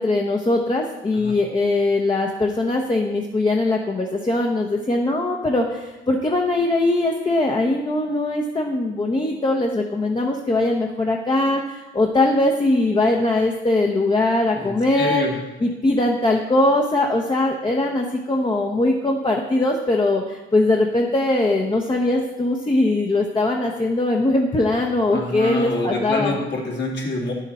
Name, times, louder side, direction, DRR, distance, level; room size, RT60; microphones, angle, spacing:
voice 1, 0.0-15.3 15.6-26.4, left 2 dB, 25° left, 0 dB, 0.9 m, -21 dB
voice 2, 14.5-15.3 25.1-27.3, left 2 dB, 65° left, -1 dB, 2.4 m, -26 dB
9.8 x 6.6 x 4.3 m, 1.1 s
cardioid pair, 90°, 20 cm